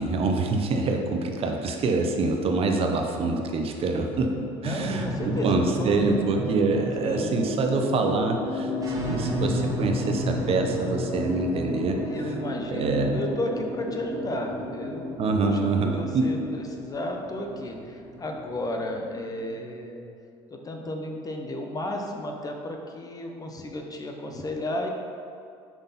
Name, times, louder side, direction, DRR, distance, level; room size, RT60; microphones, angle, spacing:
voice 1, 0.0-8.7 9.1-12.0 12.7-13.3 15.2-16.3, right 3 dB, 45° right, 3 dB, 0.8 m, -25 dB
voice 2, 4.6-6.1 7.0-7.3 12.1-15.1 15.4-20.0 20.5-24.9, left 1 dB, 30° left, 3 dB, 0.9 m, -33 dB
sound 1, 4.9-19.5, equal, 25° right, 1.5 m, -32 dB
6.0 x 5.2 x 4.2 m, 2.6 s
supercardioid pair, 85°, 13 cm